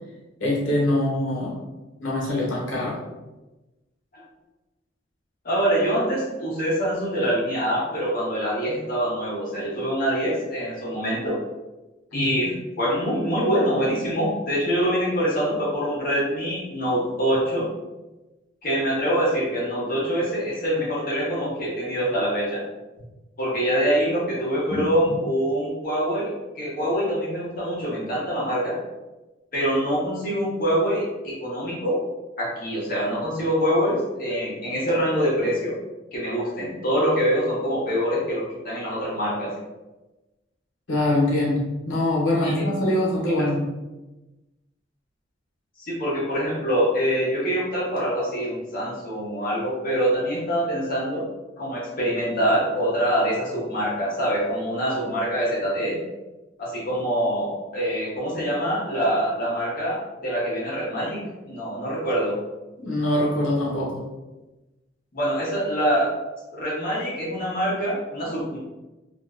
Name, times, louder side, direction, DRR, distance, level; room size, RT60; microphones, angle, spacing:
voice 1, 0.4-1.6 2.0-3.0 12.1-12.3 24.7-25.1 40.9-43.7 62.8-64.0, left 1 dB, 85° left, -5 dB, 0.9 m, -24 dB
voice 2, 5.4-11.4 12.1-17.7 18.6-22.6 23.4-26.3 26.6-28.8 29.5-32.0 32.4-35.7 36.1-39.5 42.4-42.6 45.8-51.2 51.6-56.0 56.6-62.4 65.1-66.1 66.5-68.6, equal, 50° left, -7 dB, 0.8 m, -25 dB
2.5 x 2.1 x 2.3 m, 1.1 s
head